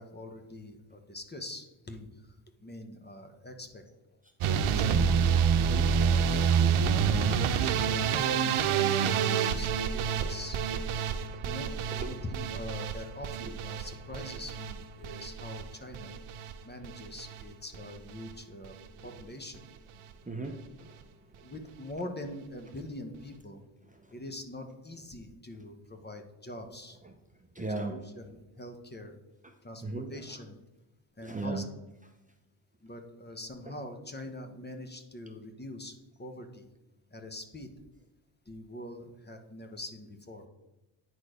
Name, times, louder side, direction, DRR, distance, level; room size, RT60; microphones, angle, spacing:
voice 1, 0.0-4.0 4.5-5.2 5.9-8.9 9.2-10.6 11.4-16.2 16.6-18.8 19.0-19.6 21.4-23.6 24.1-27.0 27.6-29.2 29.6-30.6 31.2-31.7 32.8-36.7 37.1-37.7 38.5-40.4, left 1 dB, 20° left, 6 dB, 1.0 m, -44 dB
sound 1, 4.4-16.5 16.8-17.4 17.7-18.3 18.6-18.9 19.2-19.3 19.5-19.6, right 7 dB, 85° right, 0.8 m, -28 dB
voice 2, 5.6-5.9 10.2-10.3 11.1-11.2 12.0-12.1 13.4-13.5 20.3-20.9 27.5-28.0 29.8-30.1 31.2-31.6, right 3 dB, 15° right, 3 dB, 0.7 m, -36 dB
9.5 x 4.4 x 5.0 m, 1.0 s
cardioid pair, 105°, 49 cm